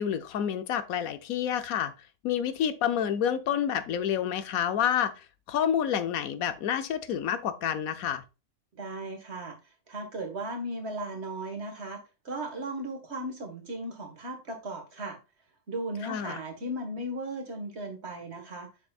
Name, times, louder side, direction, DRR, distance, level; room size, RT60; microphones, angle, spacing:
voice 1, 0.0-1.9 2.2-5.1 5.5-8.2 16.0-16.4, left 9 dB, 85° left, 1.2 m, -28 dB
voice 2, 8.8-9.6 9.9-15.2 15.7-18.7, right 1 dB, 50° right, 1.9 m, -36 dB
7.4 x 6.2 x 2.4 m
omnidirectional pair, 1.5 m